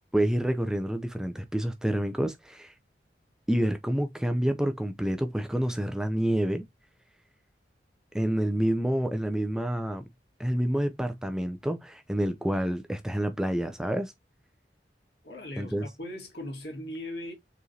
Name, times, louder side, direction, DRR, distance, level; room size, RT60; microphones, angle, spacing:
voice 1, 0.1-2.7 3.5-6.6 8.1-10.0 10.4-14.1 15.6-15.9, right 1 dB, 5° right, 0.3 m, -28 dB
voice 2, 15.2-17.3, left 1 dB, 70° left, 1.8 m, -38 dB
4.7 x 3.1 x 2.7 m
head